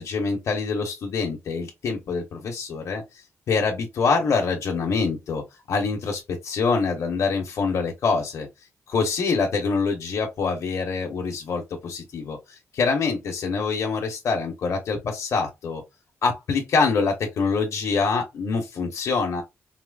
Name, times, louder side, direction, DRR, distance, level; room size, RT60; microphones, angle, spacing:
voice 1, 0.0-3.0 3.5-5.4 5.7-8.5 8.9-15.8 16.2-19.4, left 4 dB, 70° left, 0.9 m, -25 dB
4.2 x 2.0 x 2.3 m
wide cardioid pair, 135°, 5 cm